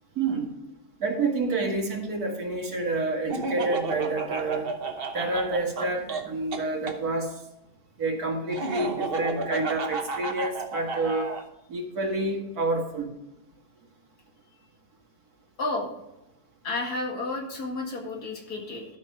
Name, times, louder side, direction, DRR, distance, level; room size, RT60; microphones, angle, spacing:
voice 1, 0.2-0.5 1.0-4.7 5.1-7.3 8.0-11.3 11.7-13.1, right 2 dB, 75° right, 1 dB, 2.4 m, -28 dB
Laughter, 3.3-7.0 8.5-11.4, right 3 dB, 45° right, 1.0 m, -32 dB
voice 2, 15.6-15.9 16.6-18.9, left 2 dB, 80° left, 1 dB, 2.6 m, -31 dB
12.0 x 6.4 x 4.4 m, 0.93 s
omnidirectional pair, 1.6 m